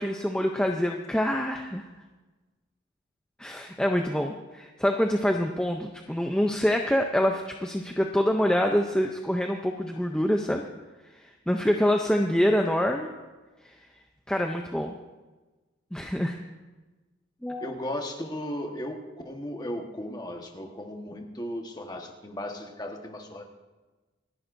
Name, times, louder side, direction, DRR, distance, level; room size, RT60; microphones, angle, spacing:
voice 1, 0.0-1.8 3.4-10.6 11.1-13.1 14.3-14.9 15.9-16.4 17.4-17.7, equal, 5° left, 3 dB, 0.5 m, -26 dB
voice 2, 17.6-23.4, left 1 dB, 20° left, 2 dB, 1.3 m, -36 dB
27.5 x 10.5 x 2.6 m, 1.2 s
head